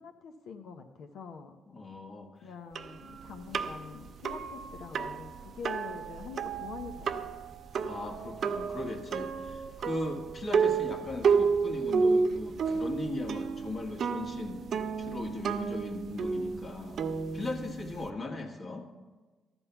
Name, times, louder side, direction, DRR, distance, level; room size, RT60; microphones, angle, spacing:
voice 1, 0.0-1.6 2.4-7.4, left 5 dB, 75° left, 5 dB, 0.8 m, -45 dB
voice 2, 1.7-2.5 7.8-14.6 15.0-17.0 17.3-18.8, left 2 dB, 45° left, 2 dB, 1.7 m, -38 dB
sound 1, 2.7-18.1, right 5 dB, 55° right, 0.6 m, -31 dB
13.0 x 5.4 x 6.9 m, 1.3 s
cardioid pair, 90°, 0 cm